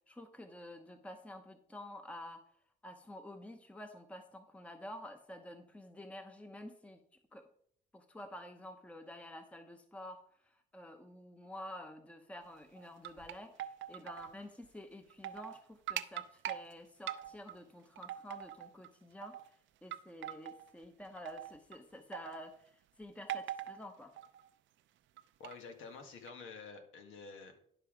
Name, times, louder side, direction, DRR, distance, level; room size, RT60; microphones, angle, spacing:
voice 1, 0.1-2.4 2.8-7.0 7.3-7.4 7.9-19.4 19.8-24.1, left 1 dB, 5° left, 6 dB, 0.8 m, -50 dB
sound 1, 12.8-14.3 14.6-14.7 15.1-15.6 15.9-16.6 17.1-17.6 18.0-18.9 19.2-19.5 19.9-20.7 21.2-21.8 22.1-22.6 23.3-23.8 24.2-24.5 25.2-25.5 26.3-26.4, right 11 dB, 75° right, 0.6 m, -42 dB
voice 2, 25.4-27.5, left 4 dB, 85° left, 5 dB, 1.6 m, -49 dB
11.0 x 5.6 x 5.0 m, 0.67 s
cardioid pair, 90°, 20 cm